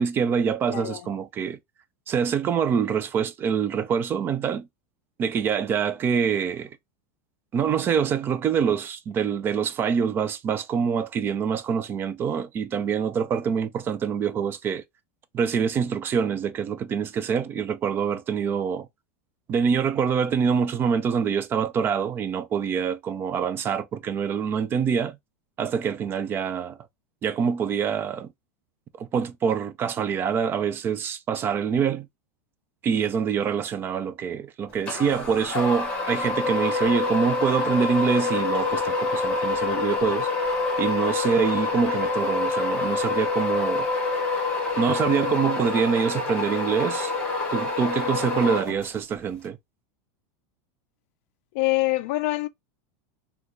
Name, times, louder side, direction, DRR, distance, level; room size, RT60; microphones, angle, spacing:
voice 1, 0.0-1.6 2.1-4.7 5.2-6.7 7.5-14.8 15.3-18.9 19.5-25.2 25.6-26.8 27.2-28.3 29.0-32.1 32.8-40.3 40.8-43.9 44.8-47.1 47.5-49.6, right 6 dB, 25° right, 0.4 m, -25 dB
voice 2, 0.7-1.0 51.5-52.5, left 19 dB, 60° left, 0.4 m, -25 dB
sound 1, 34.9-49.1, left 3 dB, 15° left, 1.6 m, -26 dB
3.6 x 2.3 x 3.0 m
supercardioid pair, 140°, 8 cm